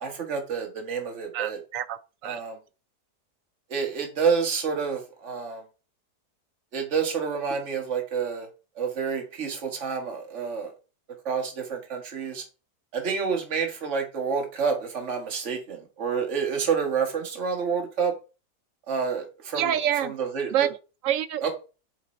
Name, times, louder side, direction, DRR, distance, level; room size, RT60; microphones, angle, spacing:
voice 1, 0.0-1.6 2.2-2.6 3.7-5.6 6.7-8.5 8.8-10.7 11.3-12.4 12.9-18.1 18.9-19.7 20.2-20.5 21.4-21.5, right 6 dB, 50° right, 1.7 m, -28 dB
voice 2, 1.3-2.4 19.5-20.1 20.5-20.8 21.0-21.4, right 10 dB, 70° right, 0.9 m, -27 dB
7.4 x 3.7 x 4.2 m
omnidirectional pair, 1.7 m